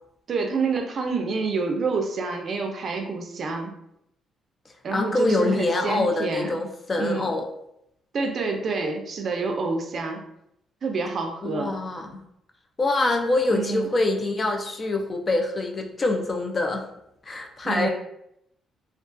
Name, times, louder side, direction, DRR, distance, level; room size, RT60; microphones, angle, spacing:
voice 1, 0.3-3.7 4.8-6.6 7.0-7.3 8.1-10.2 10.8-11.8 13.5-13.9 17.6-17.9, right 4 dB, 55° right, 4 dB, 0.4 m, -28 dB
voice 2, 4.9-7.5 11.4-12.2 12.8-16.8 17.3-17.9, left 2 dB, 35° left, 4 dB, 0.4 m, -25 dB
2.3 x 2.3 x 2.5 m, 0.78 s
cardioid pair, 90°, 0 cm